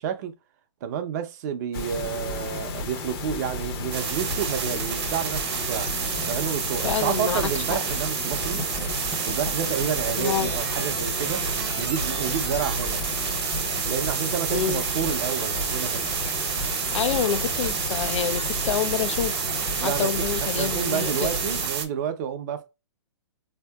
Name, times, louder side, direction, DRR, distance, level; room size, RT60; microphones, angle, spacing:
voice 1, 0.0-0.3 0.8-5.9 6.3-8.6 9.3-11.4 11.8-13.0 13.9-16.1 19.8-20.1 20.4-22.7, right 8 dB, 35° right, 0.5 m, -30 dB
sound 1, 1.7-21.7, left 3 dB, 50° left, 0.9 m, -33 dB
sound 2, 3.9-21.9, right 7 dB, 55° right, 0.8 m, -29 dB
Writing, 6.4-12.3, left 1 dB, 20° left, 0.7 m, -44 dB
voice 2, 6.8-7.4 7.7-7.8 10.1-10.5 14.5-14.8 16.9-21.4, left 8 dB, 70° left, 0.4 m, -28 dB
4.1 x 2.7 x 2.2 m
hypercardioid pair, 145°, 16 cm